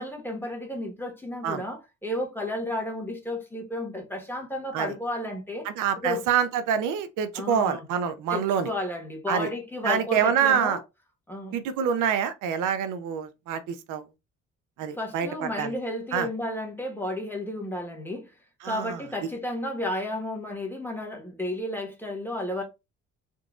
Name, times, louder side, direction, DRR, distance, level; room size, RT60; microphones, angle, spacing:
voice 1, 0.0-5.7 6.0-6.2 7.3-7.8 8.3-10.8 11.3-11.6 15.0-18.3 18.6-22.6, left 1 dB, 5° left, 1.2 m, -32 dB
voice 2, 5.6-8.7 9.3-9.5 9.8-10.8 11.5-14.0 14.8-15.7 16.1-16.3 18.6-19.0, right 8 dB, 85° right, 0.5 m, -26 dB
3.7 x 2.4 x 2.4 m
cardioid pair, 90°, 30 cm